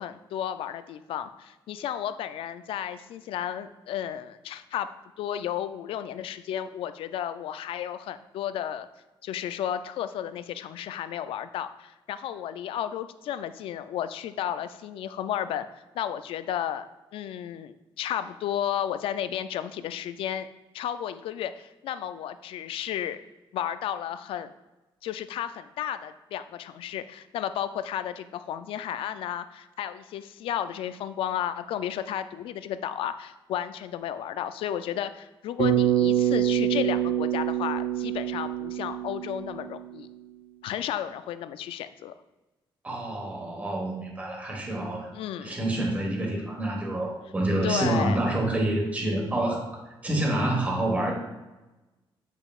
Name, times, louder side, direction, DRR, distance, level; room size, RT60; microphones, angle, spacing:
voice 1, 0.0-4.9 5.2-8.9 9.2-15.7 15.9-20.5 20.7-23.2 23.5-24.5 25.0-40.1 40.6-42.1 45.1-45.6 47.6-48.2, left 10 dB, 80° left, 12 dB, 0.4 m, -33 dB
Bass guitar, 35.6-40.0, right 10 dB, 70° right, 0.8 m, -26 dB
voice 2, 42.8-45.1 45.4-49.7 50.0-51.1, right 1 dB, 15° right, -1 dB, 1.3 m, -27 dB
7.9 x 5.5 x 2.4 m, 1.1 s
cardioid pair, 180°, 9 cm